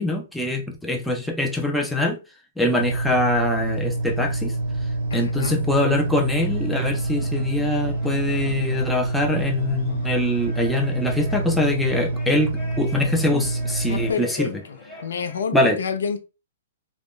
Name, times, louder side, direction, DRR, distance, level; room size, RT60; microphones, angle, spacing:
voice 1, 0.0-2.2 2.6-4.5 5.1-14.5 15.5-15.8, left 1 dB, ahead, 0.3 m, -23 dB
sound 1, 2.8-14.1, right 2 dB, 75° right, 0.8 m, -26 dB
voice 2, 5.1-5.6 13.9-16.2, left 6 dB, 80° left, 0.5 m, -29 dB
sound 2, 5.6-15.5, left 1 dB, 20° left, 1.0 m, -44 dB
2.4 x 2.1 x 3.4 m
hypercardioid pair, 160°, 0 cm